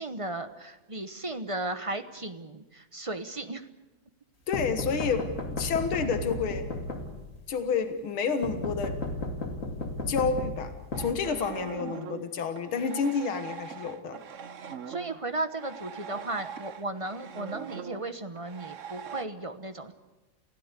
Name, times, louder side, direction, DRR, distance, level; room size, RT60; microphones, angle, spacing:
voice 1, 0.0-3.7 11.5-12.0 14.9-19.9, right 2 dB, 25° right, 9 dB, 0.8 m, -35 dB
voice 2, 4.5-6.7 7.5-9.0 10.1-14.2, left 5 dB, 90° left, 8 dB, 2.3 m, -29 dB
sound 1, 4.5-7.5 8.4-11.8, left 2 dB, 40° left, 2.6 m, -34 dB
sound 2, 10.9-19.2, right 7 dB, 50° right, 1.0 m, -42 dB
29.0 x 16.0 x 8.3 m, 1.1 s
omnidirectional pair, 2.2 m